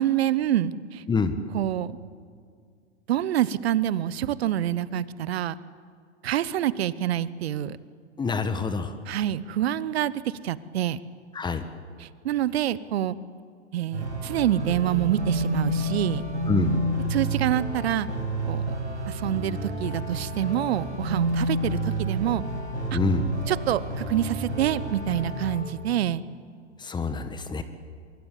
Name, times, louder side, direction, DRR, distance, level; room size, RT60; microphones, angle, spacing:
voice 1, 0.0-1.0 1.5-2.0 3.1-5.5 6.2-7.8 9.1-11.0 12.0-13.2 13.7-16.2 17.1-18.1 18.5-18.7 19.1-22.4 22.9-23.0 23.5-26.2, right 11 dB, 60° right, 18 dB, 1.1 m, -26 dB
voice 2, 8.2-9.0 11.3-11.6 16.5-16.8 22.9-23.3 26.8-27.6, left 4 dB, 10° left, 10 dB, 1.4 m, -26 dB
sound 1, 13.9-25.6, right 1 dB, 85° right, 7.9 m, -29 dB
24.5 x 23.0 x 8.5 m, 2.1 s
hypercardioid pair, 105°, 35 cm